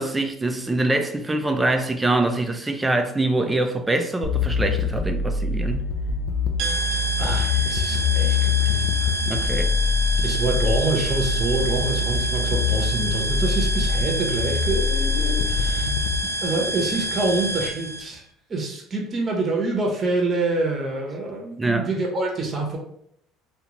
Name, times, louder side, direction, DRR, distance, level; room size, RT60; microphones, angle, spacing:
voice 1, 0.0-5.8 9.3-9.7 21.6-21.9, right 2 dB, 15° right, 0.4 m, -24 dB
sound 1, 4.2-16.2, left 4 dB, 60° left, 0.4 m, -24 dB
sound 2, 6.6-18.0, equal, 70° right, 0.6 m, -28 dB
voice 2, 7.2-9.2 10.2-15.9 16.4-18.2 18.5-22.8, right 3 dB, 40° right, 0.9 m, -26 dB
2.4 x 2.4 x 3.0 m
supercardioid pair, 85°, 0 cm